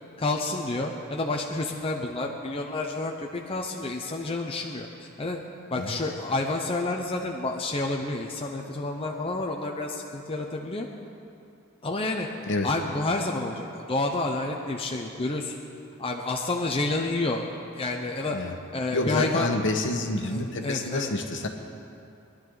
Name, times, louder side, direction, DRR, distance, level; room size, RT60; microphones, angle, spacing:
voice 1, 0.2-5.4 5.7-10.9 11.8-12.3 12.6-15.6 16.0-17.5 17.8-18.4 18.7-19.6 20.2-21.1, left 2 dB, 25° left, 1 dB, 0.8 m, -29 dB
voice 2, 18.9-21.5, left 2 dB, 60° left, 4 dB, 1.3 m, -28 dB
22.0 x 11.5 x 4.0 m, 2.6 s
head